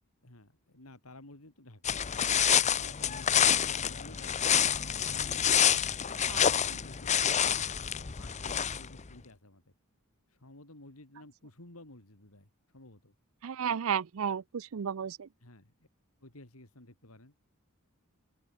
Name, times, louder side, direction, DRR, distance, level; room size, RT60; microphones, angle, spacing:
voice 1, 0.2-2.0 2.6-5.5 5.9-9.6 10.3-13.1 15.4-15.7 16.2-17.3, left 1 dB, 75° left, 3.7 m, -53 dB
sound 1, 1.8-9.0, left 9 dB, 30° left, 0.7 m, -27 dB
voice 2, 13.4-15.3, right 7 dB, 70° right, 0.5 m, -33 dB
open air
head